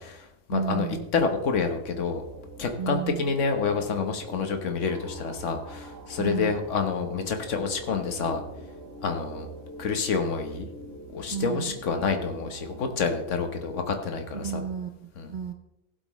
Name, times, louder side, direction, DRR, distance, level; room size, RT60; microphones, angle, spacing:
voice 1, 0.0-0.9 1.1-2.2 2.6-8.4 9.0-9.5 9.8-10.7 11.1-14.6 15.2-15.3, left 5 dB, 80° left, 6 dB, 1.4 m, -28 dB
voice 2, 0.5-1.1 2.8-3.4 6.2-6.6 11.3-11.8 14.3-15.5, right 7 dB, 50° right, 6 dB, 0.7 m, -32 dB
sound 1, 1.5-13.0, right 1 dB, 85° right, 1.5 m, -45 dB
15.5 x 8.0 x 3.1 m, 0.89 s
omnidirectional pair, 1.2 m